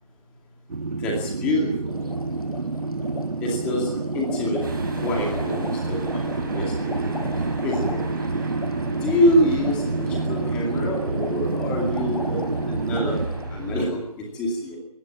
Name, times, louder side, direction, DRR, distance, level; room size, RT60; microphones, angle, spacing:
sound 1, 0.7-13.3, right 3 dB, 85° right, 2.1 m, -28 dB
voice 1, 1.0-1.9 3.4-4.6 4.9-7.3 7.6-8.0 9.0-13.2 13.5-14.8, left 1 dB, 5° left, 0 dB, 2.4 m, -26 dB
sound 2, 1.9-13.5, left 3 dB, 70° left, 6.4 m, -38 dB
sound 3, 4.6-13.9, right 2 dB, 35° right, 6.5 m, -33 dB
22.5 x 19.0 x 7.4 m, 0.77 s
hypercardioid pair, 180°, 19 cm